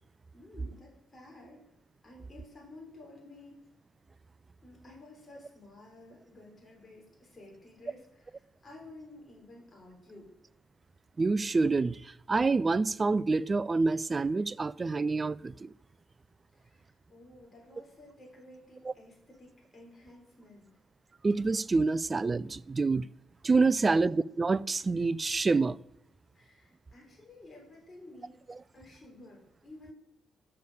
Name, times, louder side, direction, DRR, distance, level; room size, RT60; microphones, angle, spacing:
voice 1, 0.3-1.6 2.0-3.6 4.6-10.3 16.5-20.7 23.8-24.0 26.3-28.4 28.7-29.9, left 2 dB, 25° left, 3.7 m, -53 dB
voice 2, 11.2-15.7 21.2-23.1 23.4-25.8, right 3 dB, 25° right, 0.3 m, -27 dB
9.5 x 6.8 x 5.4 m
cardioid pair, 100°, 0 cm